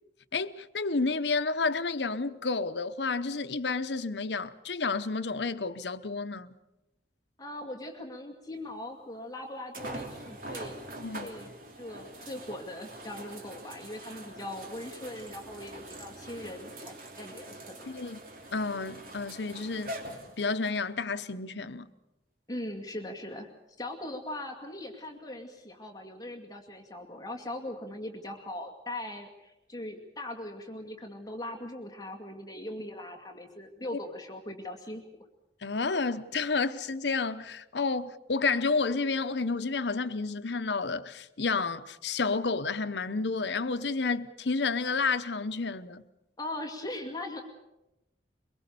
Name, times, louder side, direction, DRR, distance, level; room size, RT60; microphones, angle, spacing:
voice 1, 0.3-6.5 11.0-11.3 17.9-18.2 18.5-19.9 20.4-21.9 35.6-46.0, left 4 dB, 80° left, 0.9 m, -30 dB
voice 2, 7.4-17.9 22.5-23.5 23.8-35.0 46.4-47.4, left 1 dB, 20° left, 2.3 m, -40 dB
sound 1, 8.7-8.8 9.7-20.8 21.5-21.6 25.0-25.1, right 1 dB, 55° right, 3.1 m, -44 dB
23.5 x 22.5 x 6.9 m
head